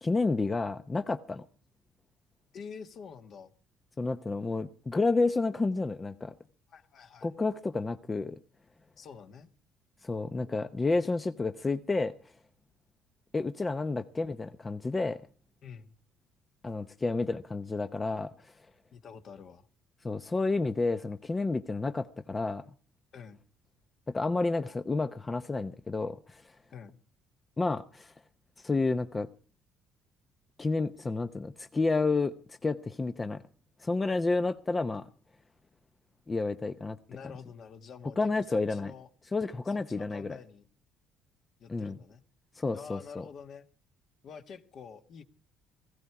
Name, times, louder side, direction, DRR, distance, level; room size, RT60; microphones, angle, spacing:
voice 1, 0.0-1.4 4.0-6.3 7.2-8.4 10.0-12.1 13.3-15.2 16.6-18.3 20.0-22.6 24.1-26.4 27.6-28.1 28.6-29.3 30.6-33.4 33.8-35.1 36.3-37.0 38.2-38.9 39.3-40.4 41.7-42.0 42.6-43.2, left 3 dB, 20° left, 0.7 m, -30 dB
voice 2, 2.5-3.5 6.7-7.3 9.0-9.5 15.6-15.9 18.9-19.7 23.1-23.4 26.7-27.0 37.1-39.1 39.6-40.7 41.6-42.2 42.7-43.7 44.2-45.2, left 6 dB, 50° left, 1.6 m, -47 dB
17.5 x 15.5 x 4.7 m
cardioid pair, 115°, 0 cm